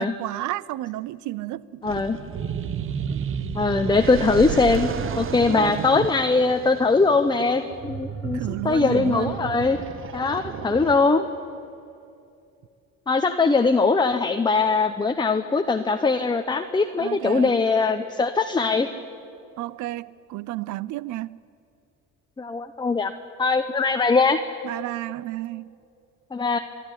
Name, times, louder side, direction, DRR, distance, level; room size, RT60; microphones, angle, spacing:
voice 1, 0.0-1.9 3.1-3.2 5.5-5.9 8.3-9.4 17.0-17.5 19.6-21.4 24.6-25.7, right 16 dB, 70° right, 0.6 m, -32 dB
voice 2, 1.8-2.2 3.5-4.9 5.2-9.8 10.1-11.3 13.1-18.9 22.4-23.1 23.4-24.4 26.3-26.6, left 4 dB, 15° left, 0.9 m, -21 dB
sound 1, 1.8-11.4, right 7 dB, 40° right, 0.9 m, -32 dB
23.0 x 11.5 x 10.0 m
supercardioid pair, 85°, 31 cm